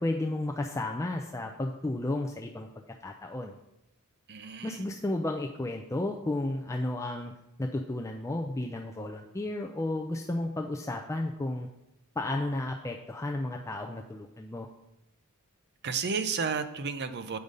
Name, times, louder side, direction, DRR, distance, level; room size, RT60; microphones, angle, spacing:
voice 1, 0.0-2.7 3.0-3.5 4.6-7.3 7.6-11.7 12.2-14.7, left 2 dB, 15° left, 1 dB, 0.4 m, -33 dB
voice 2, 4.3-4.8 15.8-17.4, right 5 dB, 50° right, 10 dB, 0.6 m, -32 dB
8.0 x 5.0 x 5.3 m, 0.87 s
head